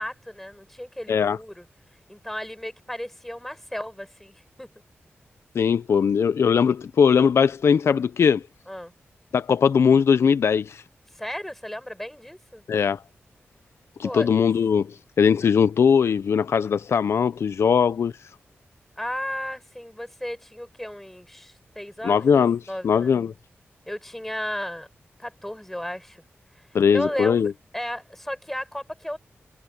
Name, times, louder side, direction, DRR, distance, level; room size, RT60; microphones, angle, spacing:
voice 1, 0.0-1.6 2.1-4.7 8.7-8.9 11.1-12.6 14.0-14.3 19.0-22.3 22.7-23.1 23.9-24.9 25.2-26.2 26.6-26.7 26.9-29.2, left 1 dB, 5° left, 7.9 m, -34 dB
voice 2, 5.5-8.4 9.3-10.8 12.7-13.0 14.0-18.1 22.0-23.3 26.7-27.5, left 6 dB, 80° left, 0.6 m, -20 dB
wide cardioid pair, 170°, 4 cm